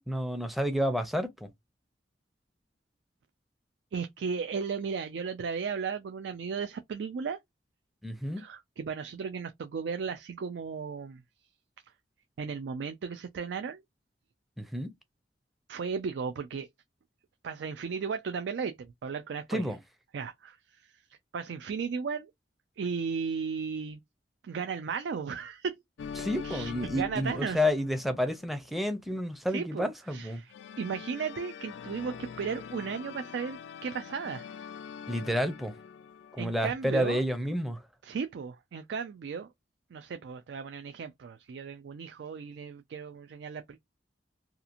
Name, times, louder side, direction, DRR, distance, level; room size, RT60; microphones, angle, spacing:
voice 1, 0.0-1.5 8.0-8.4 14.6-14.9 19.5-19.8 26.2-30.4 35.1-35.7 36.3-37.8, equal, ahead, 0.5 m, -30 dB
voice 2, 3.9-7.4 8.4-11.2 12.4-13.8 15.7-16.7 17.4-19.7 20.1-20.6 21.3-22.3 22.8-24.0 24.4-25.8 26.4-27.6 29.5-34.5 36.4-37.2 38.0-39.5 39.9-43.8, right 5 dB, 75° right, 0.4 m, -35 dB
sound 1, 26.0-28.6 30.5-36.7, left 6 dB, 80° left, 0.3 m, -44 dB
2.8 x 2.4 x 2.5 m
head